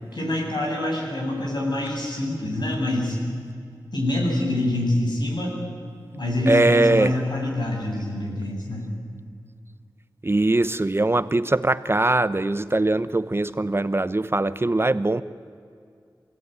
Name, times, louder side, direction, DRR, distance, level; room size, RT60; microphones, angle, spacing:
voice 1, 0.1-3.2 3.9-5.5 6.1-8.8, left 1 dB, 65° left, -1 dB, 7.8 m, -25 dB
voice 2, 6.5-7.1 10.2-15.2, right 2 dB, 30° right, 14 dB, 0.7 m, -21 dB
26.5 x 17.5 x 9.4 m, 2.2 s
wide cardioid pair, 55°, 8 cm